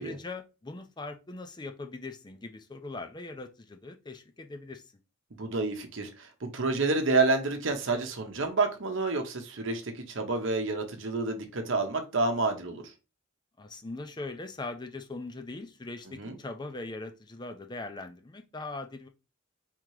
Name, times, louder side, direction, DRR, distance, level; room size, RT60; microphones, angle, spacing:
voice 1, 0.0-4.8 13.6-19.1, left 2 dB, 20° left, 0.5 m, -40 dB
voice 2, 5.4-12.8 16.2-16.4, right 3 dB, 60° right, 0.8 m, -29 dB
3.7 x 2.9 x 4.6 m
head